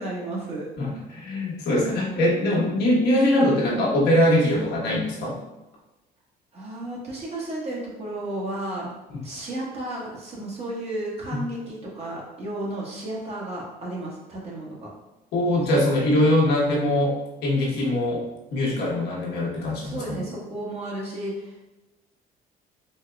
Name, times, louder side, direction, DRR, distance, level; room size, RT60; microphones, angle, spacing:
voice 1, 0.0-0.7 6.5-8.9 9.2-14.9 19.8-21.7, right 1 dB, 40° right, -4 dB, 1.3 m, -33 dB
voice 2, 0.8-5.4 11.3-11.4 15.3-20.2, left 1 dB, 75° left, -4 dB, 1.2 m, -22 dB
4.4 x 2.8 x 2.3 m, 1.0 s
cardioid pair, 110°, 17 cm